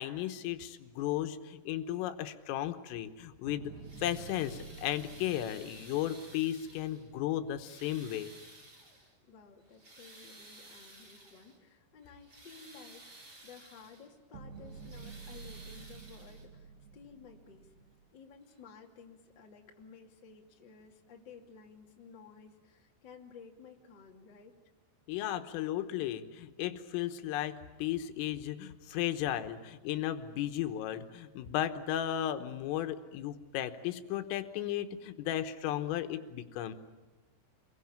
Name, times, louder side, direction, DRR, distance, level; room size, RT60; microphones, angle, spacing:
voice 1, 0.0-3.7 4.0-8.3 25.1-36.8, left 12 dB, 85° left, 8 dB, 3.7 m, -35 dB
sound 1, 3.5-7.8 14.3-18.1, right 5 dB, 55° right, 3.2 m, -50 dB
sound 2, 3.7-7.1 7.5-9.2 9.6-11.6 12.0-14.1 14.6-16.7 17.8-17.9 18.5-18.6, right 2 dB, 20° right, 3.5 m, -55 dB
voice 2, 9.3-17.7 18.1-24.6, left 5 dB, 30° left, 1 dB, 2.2 m, -54 dB
28.0 x 22.0 x 8.8 m, 1.2 s
omnidirectional pair, 5.8 m